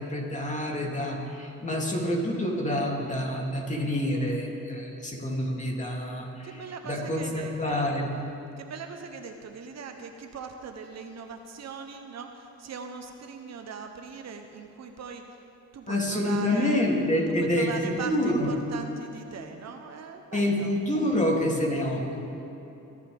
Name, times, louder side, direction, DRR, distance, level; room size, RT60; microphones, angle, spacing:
voice 1, 0.0-8.1 15.9-18.5 20.3-22.2, left 1 dB, 25° left, -2 dB, 3.0 m, -27 dB
voice 2, 6.4-8.0 8.6-15.4 15.7-16.8 17.3-20.8, right 5 dB, 60° right, 5 dB, 1.1 m, -40 dB
23.0 x 11.0 x 3.6 m, 2.9 s
cardioid pair, 90°, 30 cm